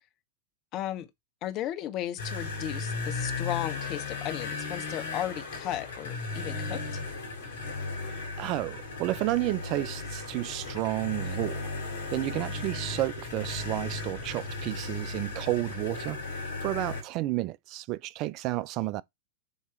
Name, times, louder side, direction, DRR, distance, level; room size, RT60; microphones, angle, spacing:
voice 1, 0.7-1.1 1.4-6.8, left 12 dB, 40° left, 1.1 m, -35 dB
sound 1, 2.2-17.0, left 3 dB, 65° left, 2.6 m, -36 dB
voice 2, 8.1-11.7 12.1-19.0, right 17 dB, 40° right, 0.5 m, -31 dB
7.0 x 3.0 x 4.6 m
figure-of-eight pair, 90°, 0 cm